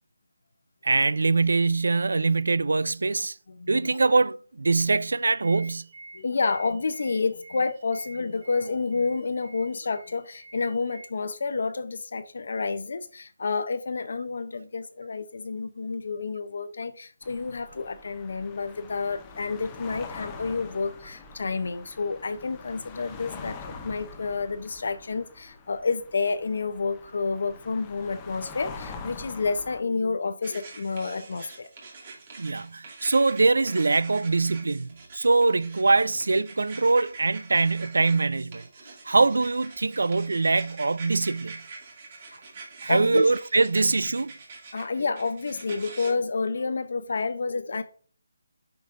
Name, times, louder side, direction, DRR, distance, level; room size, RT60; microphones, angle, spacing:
voice 1, 0.8-3.4 3.7-5.9 32.4-38.6 39.1-41.6 42.8-44.3, right 3 dB, 80° right, 0.4 m, -23 dB
sound 1, 5.2-11.1, right 2 dB, 65° right, 2.0 m, -49 dB
voice 2, 6.1-31.7 42.9-43.3 44.7-47.8, left 4 dB, 55° left, 0.6 m, -29 dB
sound 2, 17.2-29.8, left 4 dB, 15° left, 0.6 m, -44 dB
sound 3, 30.4-46.1, right 4 dB, 30° right, 2.1 m, -45 dB
8.4 x 5.9 x 2.5 m
hypercardioid pair, 175°, 0 cm